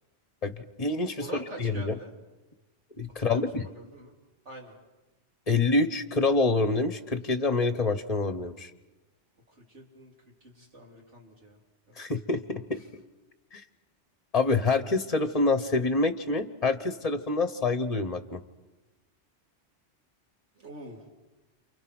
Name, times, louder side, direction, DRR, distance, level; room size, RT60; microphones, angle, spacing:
voice 1, 0.4-1.3 1.6-2.0 3.0-3.7 5.5-8.7 12.0-12.8 13.5-13.6 14.3-18.4, left 3 dB, 35° left, 10 dB, 1.1 m, -26 dB
voice 2, 1.2-2.1 3.2-3.5 3.7-4.1 4.5-4.7 9.7-10.1 10.4-11.6 11.9-12.0 20.6-21.1, right 1 dB, 75° right, -1 dB, 3.7 m, -45 dB
29.5 x 28.0 x 6.2 m, 1.1 s
omnidirectional pair, 1.2 m